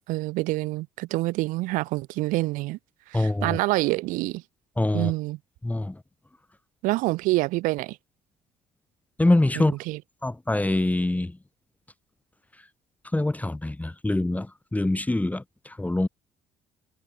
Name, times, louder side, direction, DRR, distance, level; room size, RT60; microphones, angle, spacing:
voice 1, 0.1-2.8 3.1-4.4 4.9-5.4 6.8-8.0 9.5-10.0, right 20 dB, 80° right, 4.5 m, -27 dB
voice 2, 3.1-3.6 4.8-5.1 5.6-6.0 9.2-9.7 10.2-11.3 13.1-14.5 14.7-16.1, left 2 dB, 10° left, 2.0 m, -24 dB
supercardioid pair, 70°, 14 cm